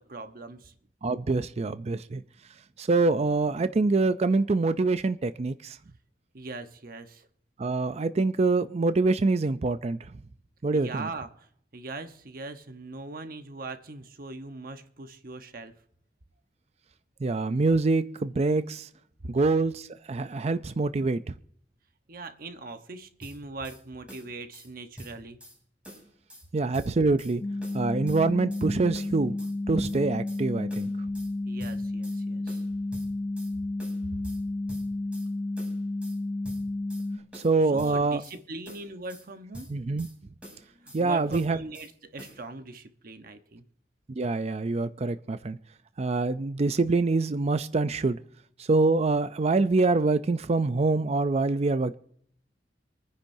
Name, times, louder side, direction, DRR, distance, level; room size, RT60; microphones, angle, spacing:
voice 1, 0.1-0.7 6.3-7.3 10.7-11.5 11.7-15.7 22.1-25.4 31.5-32.6 34.1-34.3 37.6-39.7 40.7-43.6, right 3 dB, 55° right, 1.0 m, -40 dB
voice 2, 1.0-2.2 2.8-5.8 7.6-10.0 10.6-11.1 17.2-18.8 19.3-21.3 26.5-27.4 27.7-29.3 29.7-30.9 37.3-38.2 39.7-40.1 40.9-41.6 44.2-45.6 46.0-48.2 48.7-51.9, right 3 dB, 35° right, 0.4 m, -25 dB
sound 1, 23.2-23.8 24.1-24.7 25.0-25.6 25.8-26.5 26.7-27.3 27.6-28.7 28.9-29.5 29.8-30.4 30.7-31.3 31.6-32.2 32.5-33.5 33.8-34.4 34.7-35.3 35.6-36.2 36.4-37.1 37.3-38.4 38.6-39.3 39.5-40.1 40.4-41.0 41.3-41.9 42.2-42.4, equal, 5° right, 6.9 m, -46 dB
sound 2, 27.4-37.2, left 2 dB, 25° left, 0.8 m, -32 dB
26.5 x 10.0 x 2.7 m
head